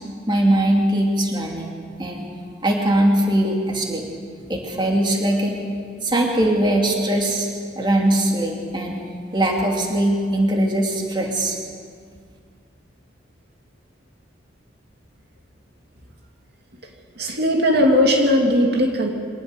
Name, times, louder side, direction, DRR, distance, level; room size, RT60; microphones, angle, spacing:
voice 1, 0.3-1.7 2.0-2.3 2.6-4.0 4.5-5.6 6.0-7.5 7.8-9.0 9.3-11.6, right 1 dB, 25° right, 0 dB, 2.6 m, -20 dB
voice 2, 17.2-19.1, left 1 dB, 60° right, 1 dB, 2.6 m, -18 dB
24.5 x 18.5 x 6.6 m, 2.1 s
head